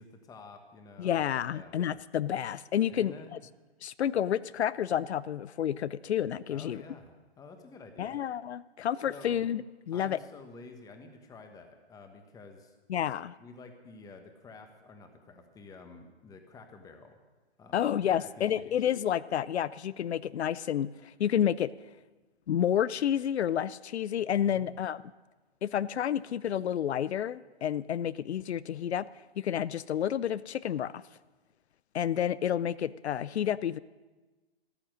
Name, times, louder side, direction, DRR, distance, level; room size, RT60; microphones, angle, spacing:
voice 1, 0.0-1.7 2.9-3.3 6.5-8.2 9.0-9.4 9.9-12.7 13.4-17.2 17.6-18.8 24.3-24.8, left 4 dB, 10° left, 6 dB, 1.3 m, -50 dB
voice 2, 1.0-3.4 3.8-6.8 8.0-10.2 12.9-13.4 17.7-21.7 22.5-25.0 25.6-29.1 29.4-31.0 31.9-33.8, left 10 dB, 85° left, 18 dB, 0.5 m, -30 dB
14.0 x 12.0 x 6.4 m, 1.2 s
hypercardioid pair, 140°, 32 cm